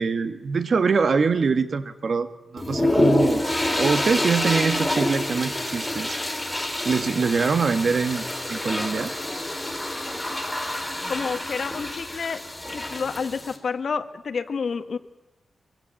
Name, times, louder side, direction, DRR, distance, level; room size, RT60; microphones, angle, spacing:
voice 1, 0.0-3.5 3.7-6.2 6.9-9.1, right 5 dB, 60° right, 10 dB, 1.6 m, -24 dB
sound 1, 2.6-13.6, left 1 dB, 5° left, 3.6 m, -27 dB
voice 2, 11.1-12.4 12.7-15.0, left 5 dB, 65° left, 8 dB, 1.6 m, -29 dB
23.5 x 23.0 x 7.7 m, 1.0 s
wide cardioid pair, 90°, 0 cm